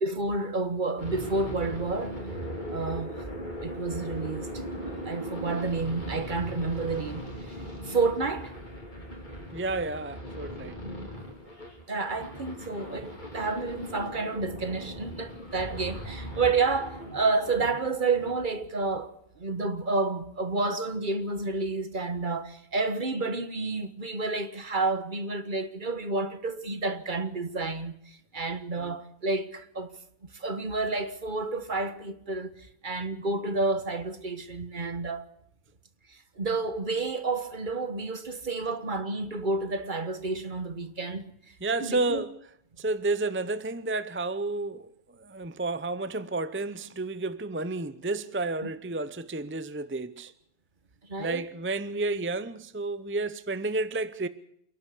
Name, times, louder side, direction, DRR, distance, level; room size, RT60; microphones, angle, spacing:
voice 1, 0.0-2.2 2.7-3.1 3.6-4.5 5.0-7.2 7.9-8.5 10.8-11.1 11.9-27.9 28.3-30.0 30.4-32.5 32.8-35.2 36.4-41.2 41.8-42.2 48.6-48.7 51.1-51.4, right 3 dB, 50° right, 1.6 m, -30 dB
sound 1, 1.0-17.7 18.0-18.3, equal, 50° left, 5.0 m, -39 dB
voice 2, 9.5-10.8 28.8-28.9 41.6-42.3 42.8-44.9 45.2-50.3 51.2-54.3, right 2 dB, 15° right, 0.7 m, -31 dB
28.0 x 11.5 x 8.3 m
omnidirectional pair, 1.1 m